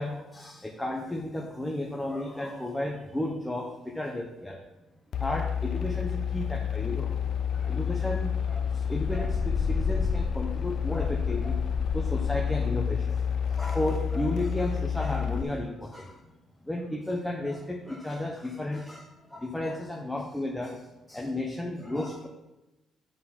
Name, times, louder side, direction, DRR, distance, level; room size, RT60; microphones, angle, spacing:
voice 1, 0.0-4.6 5.2-7.1 7.5-11.6 11.9-16.2 16.6-22.3, left 1 dB, 5° left, 0 dB, 0.6 m, -33 dB
sound 1, 5.1-15.4, left 7 dB, 50° left, 0.4 m, -29 dB
10.0 x 3.9 x 5.8 m, 1.0 s
cardioid pair, 165°, 0 cm